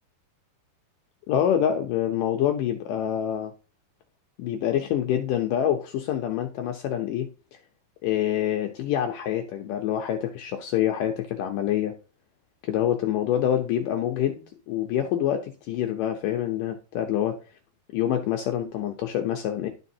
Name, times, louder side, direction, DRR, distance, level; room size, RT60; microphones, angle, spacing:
voice 1, 1.3-3.5 4.4-7.6 8.0-11.9 12.6-17.4 17.9-19.7, left 10 dB, 85° left, 5 dB, 1.9 m, -26 dB
11.5 x 5.0 x 2.7 m, 0.36 s
omnidirectional pair, 4.6 m